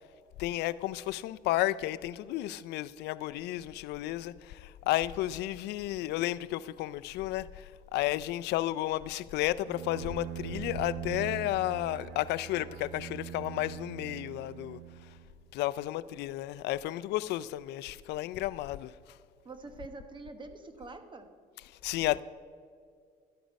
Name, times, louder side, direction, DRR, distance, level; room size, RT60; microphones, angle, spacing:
voice 1, 0.4-14.8 15.5-18.9 21.8-22.2, left 15 dB, 80° left, 0.4 m, -32 dB
Bowed string instrument, 9.6-15.5, right 12 dB, 80° right, 0.5 m, -42 dB
voice 2, 19.4-21.3, right 3 dB, 30° right, 1.2 m, -45 dB
13.0 x 10.0 x 5.3 m
cardioid pair, 110°, 17 cm